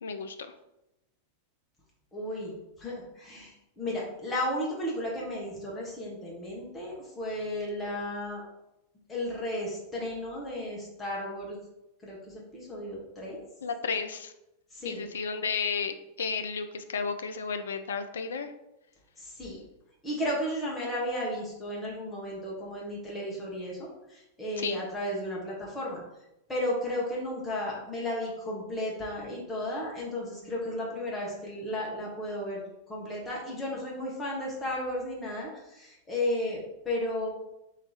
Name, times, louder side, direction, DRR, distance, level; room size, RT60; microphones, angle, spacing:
voice 1, 0.0-0.5 13.6-14.3 14.8-18.5 24.6-24.8, left 5 dB, 65° left, 9 dB, 0.4 m, -33 dB
voice 2, 2.1-2.5 2.8-8.4 9.1-11.6 12.0-13.4 14.7-15.1 19.2-19.6 20.0-26.0 26.5-36.6 36.8-37.3, left 1 dB, 15° left, -4 dB, 1.5 m, -34 dB
3.4 x 3.1 x 3.9 m, 0.89 s
figure-of-eight pair, 90°, 0 cm